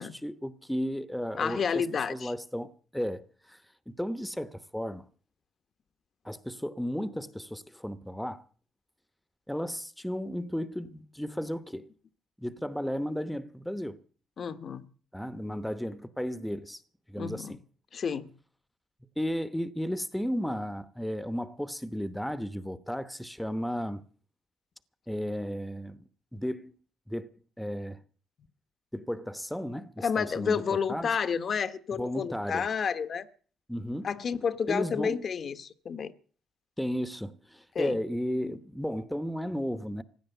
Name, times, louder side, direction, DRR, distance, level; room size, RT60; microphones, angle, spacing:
voice 1, 0.0-3.6 3.9-5.0 6.2-8.4 9.5-11.9 12.4-14.0 15.1-16.8 17.1-17.6 19.2-24.0 25.1-26.0 26.3-26.7 27.1-27.3 27.6-28.0 28.9-31.1 31.9-32.7 33.7-34.1 34.7-35.2 36.8-40.0, equal, 5° left, 1.0 m, -34 dB
voice 2, 1.4-2.3 14.4-14.8 17.2-17.6 17.9-18.3 30.0-33.3 34.0-36.1 37.7-38.0, left 6 dB, 50° left, 1.1 m, -30 dB
16.0 x 10.5 x 8.1 m
cardioid pair, 90°, 0 cm